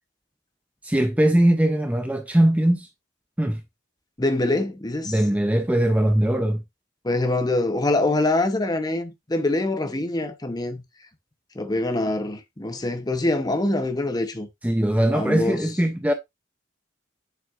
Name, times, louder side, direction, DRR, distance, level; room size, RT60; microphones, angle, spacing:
voice 1, 0.8-2.9 3.4-3.6 5.0-6.6 14.6-16.1, right 1 dB, 5° right, 0.5 m, -20 dB
voice 2, 4.2-5.1 7.0-10.8 11.5-14.5 15.1-15.6, left 2 dB, 20° left, 0.8 m, -24 dB
7.2 x 5.8 x 2.4 m
head